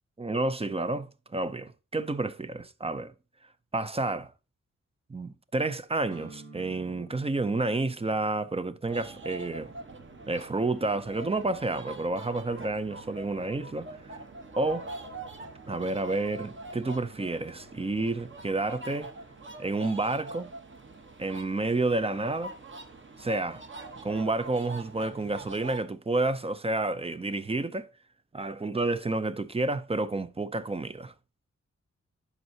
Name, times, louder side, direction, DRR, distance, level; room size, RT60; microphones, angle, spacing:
voice 1, 0.2-1.1 1.3-3.1 3.7-4.3 5.1-9.7 10.3-13.9 14.6-14.9 15.7-19.1 19.6-20.5 21.2-22.5 23.2-23.6 24.0-27.9 28.3-31.1, right 2 dB, 20° right, 0.5 m, -30 dB
sound 1, 6.1-13.9, right 2 dB, 55° right, 1.9 m, -55 dB
sound 2, 8.8-25.8, right 2 dB, 40° right, 1.1 m, -44 dB
11.0 x 5.4 x 2.8 m
wide cardioid pair, 155°, 30 cm